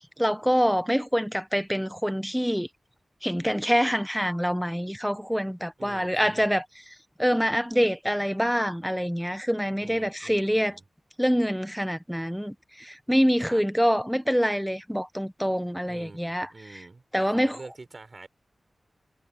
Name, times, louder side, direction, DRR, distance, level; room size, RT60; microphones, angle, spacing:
voice 1, 0.2-2.7 3.2-6.6 7.2-10.7 11.2-16.5 17.1-17.6, equal, ahead, 1.1 m, -25 dB
voice 2, 5.8-6.5 9.8-10.9 13.4-13.6 15.9-18.3, right 3 dB, 40° right, 5.0 m, -46 dB
wide cardioid pair, 135°, 0 cm